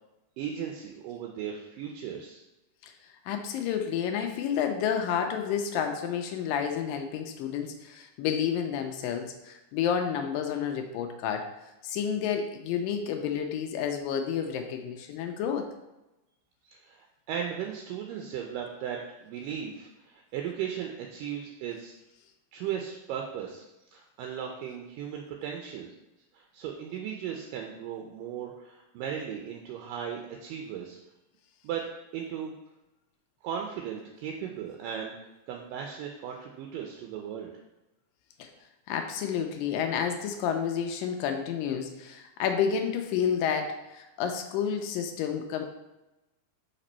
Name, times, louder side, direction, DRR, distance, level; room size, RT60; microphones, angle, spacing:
voice 1, 0.4-2.4 16.7-21.9 22.5-23.6 23.9-25.9 26.3-31.0 31.6-31.8 32.1-32.5 33.4-35.2 35.5-37.5, right 8 dB, 80° right, 1 dB, 2.2 m, -36 dB
voice 2, 3.3-11.5 11.8-15.7 38.4-38.5 38.9-45.6, left 8 dB, 85° left, 5 dB, 2.3 m, -30 dB
5.2 x 5.1 x 4.3 m, 0.96 s
omnidirectional pair, 4.0 m